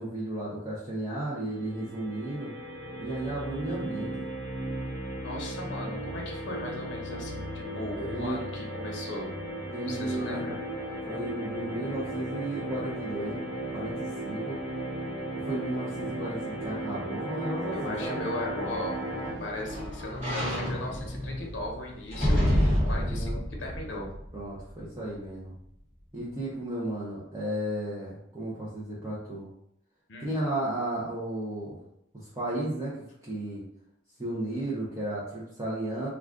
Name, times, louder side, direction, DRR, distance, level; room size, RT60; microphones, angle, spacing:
voice 1, 0.0-2.5 3.0-4.3 7.9-8.4 9.7-10.5 11.1-13.4 13.7-14.6 15.4-18.2 23.0-23.4 24.3-25.5 26.1-29.5 30.2-31.8 32.1-33.6 34.2-36.1, right 1 dB, 15° right, -8 dB, 0.6 m, -34 dB
sound 1, 1.5-19.4, right 1 dB, 90° right, 0.9 m, -36 dB
voice 2, 5.2-9.3 9.9-10.6 17.7-19.0 19.4-23.3 23.6-24.1 30.1-30.4, left 1 dB, 70° left, 0 dB, 0.7 m, -37 dB
sound 2, 18.5-24.8 25.3-25.4, equal, 35° right, 1.2 m, -29 dB
2.4 x 2.3 x 3.5 m, 0.74 s
head